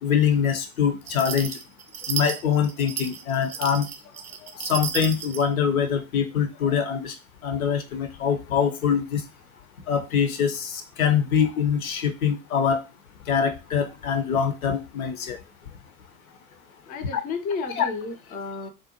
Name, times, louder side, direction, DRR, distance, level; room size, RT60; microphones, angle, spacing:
voice 1, 0.0-1.5 2.1-3.9 4.6-7.1 7.4-9.2 9.9-12.8 13.3-15.4 17.1-17.2 17.7-17.9, left 7 dB, 75° left, 7 dB, 0.7 m, -24 dB
sound 1, 1.1-5.5, right 7 dB, 85° right, 0.5 m, -33 dB
voice 2, 16.9-18.7, left 4 dB, 20° left, 6 dB, 0.4 m, -32 dB
2.6 x 2.1 x 2.8 m, 0.28 s
figure-of-eight pair, 85°, 42 cm